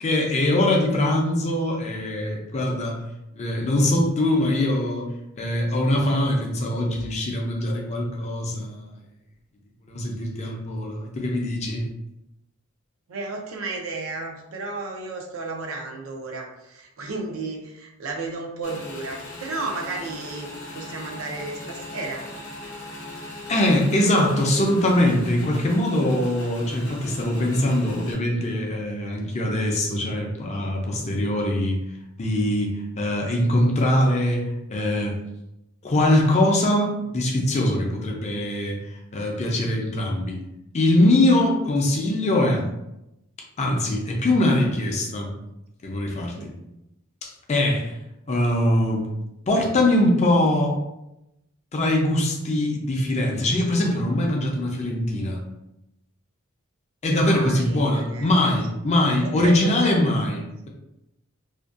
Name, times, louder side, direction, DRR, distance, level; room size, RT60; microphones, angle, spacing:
voice 1, 0.0-3.0 3.3-5.1 5.3-8.9 9.9-11.9 23.5-31.8 32.2-35.2 35.8-40.4 40.7-42.7 43.6-45.3 45.8-46.5 47.2-47.9 48.3-49.0 49.5-50.8 51.7-55.4 57.0-60.7, left 1 dB, 30° left, 0 dB, 0.4 m, -22 dB
voice 2, 13.1-22.3 46.2-46.6 47.6-47.7 57.0-58.3 59.1-60.1, right 3 dB, 70° right, 1 dB, 0.5 m, -33 dB
Motorcycle / Engine, 18.6-28.1, left 2 dB, 65° left, 0.7 m, -39 dB
2.5 x 2.2 x 2.4 m, 0.88 s
head